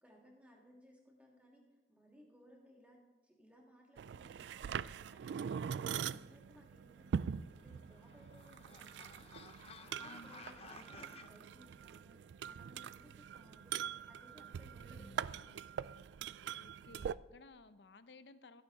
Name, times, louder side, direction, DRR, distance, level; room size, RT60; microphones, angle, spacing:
voice 1, 0.0-3.0 3.2-4.8 5.1-9.3 9.8-15.5, equal, 10° right, -2 dB, 2.8 m, -62 dB
sound 1, 4.0-17.1, right 7 dB, 80° right, 0.3 m, -43 dB
voice 2, 5.8-6.3 10.0-10.4 15.0-15.5 16.5-18.6, left 2 dB, 75° left, 13 dB, 0.7 m, -58 dB
sound 2, 7.4-11.3, left 4 dB, 35° left, 0.8 m, -56 dB
14.0 x 11.0 x 4.2 m, 1.1 s
head